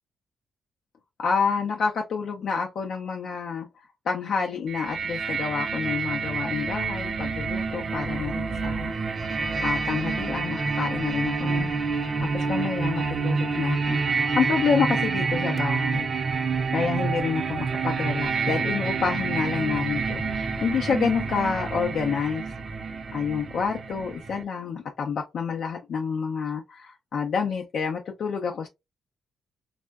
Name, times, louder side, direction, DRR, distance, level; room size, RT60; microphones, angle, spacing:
voice 1, 1.2-3.7 4.1-9.4 9.6-16.1 16.7-22.4 23.1-28.7, left 6 dB, 70° left, 0.4 m, -28 dB
sound 1, 4.7-24.4, right 4 dB, 45° right, 0.4 m, -28 dB
3.5 x 2.0 x 2.2 m
cardioid pair, 80°, 0 cm